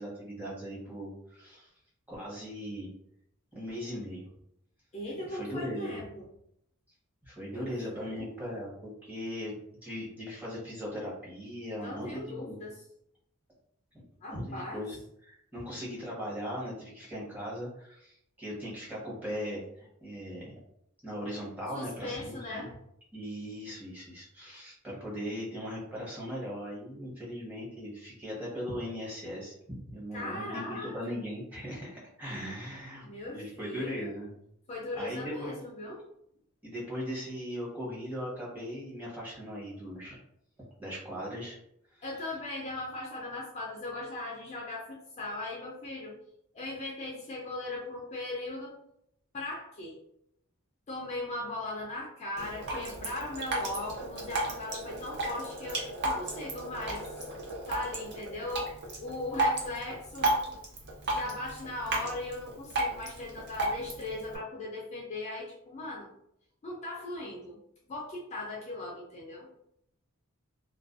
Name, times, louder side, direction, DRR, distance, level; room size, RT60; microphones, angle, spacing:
voice 1, 0.0-1.7 2.1-2.9 3.5-4.2 5.2-6.0 7.2-9.6 9.8-12.6 14.2-15.0 15.3-20.6 21.0-22.7 23.1-29.6 29.9-34.3 34.9-35.5 36.6-40.2 40.8-41.6, equal, 10° right, -7 dB, 0.8 m, -39 dB
voice 2, 4.9-6.3 7.5-8.4 11.8-12.8 14.2-14.8 21.7-22.7 30.1-31.2 33.0-34.1 34.7-36.0 42.0-46.2 46.5-48.8 49.3-50.0 50.9-57.1 57.7-58.7 59.0-60.4 61.1-66.1 66.6-67.6 67.9-69.5, left 2 dB, 30° left, -3 dB, 0.4 m, -38 dB
Drip, 52.4-64.4, right 2 dB, 50° right, 0.6 m, -34 dB
2.4 x 2.2 x 2.4 m, 0.75 s
head